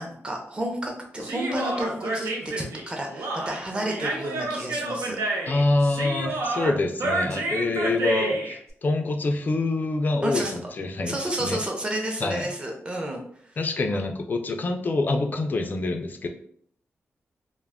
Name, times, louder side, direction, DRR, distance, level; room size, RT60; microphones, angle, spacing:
voice 1, 0.0-5.2 10.2-10.5 11.1-13.2 13.5-13.6, right 1 dB, 20° right, 1 dB, 0.6 m, -31 dB
Human voice, 1.2-8.6, right 2 dB, 90° right, 0.5 m, -29 dB
voice 2, 5.5-11.1 11.4-11.6 12.2-12.5 13.6-16.3, left 2 dB, 40° left, 4 dB, 0.3 m, -26 dB
2.2 x 2.1 x 3.4 m, 0.63 s
wide cardioid pair, 115°, 5 cm